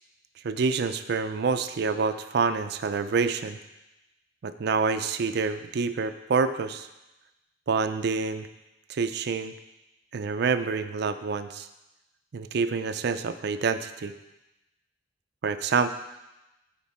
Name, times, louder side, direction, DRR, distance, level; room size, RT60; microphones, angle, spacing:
voice 1, 0.4-3.6 4.4-6.9 7.7-8.5 8.9-9.5 10.1-11.7 12.3-14.1 15.4-15.9, right 5 dB, 60° right, 10 dB, 0.4 m, -27 dB
11.0 x 4.4 x 4.3 m, 0.99 s
head